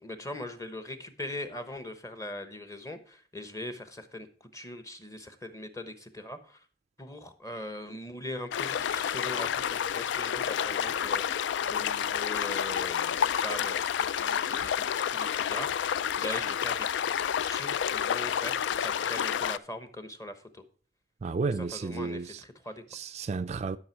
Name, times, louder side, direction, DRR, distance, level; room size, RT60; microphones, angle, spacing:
voice 1, 0.0-6.6 7.0-17.0 17.5-20.6 21.6-22.8, left 1 dB, 20° left, 1.0 m, -41 dB
sound 1, 8.5-19.6, left 8 dB, 75° left, 0.3 m, -29 dB
voice 2, 21.2-22.4 22.9-23.8, right 4 dB, 35° right, 0.3 m, -32 dB
11.0 x 6.0 x 4.5 m
head